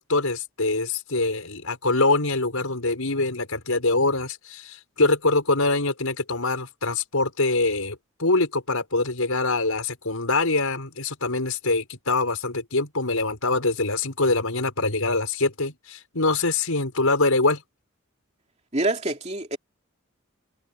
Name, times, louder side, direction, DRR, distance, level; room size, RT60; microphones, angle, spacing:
voice 1, 0.0-17.6, left 3 dB, 85° left, 5.4 m, -24 dB
voice 2, 18.7-19.6, right 2 dB, 30° right, 2.6 m, -26 dB
head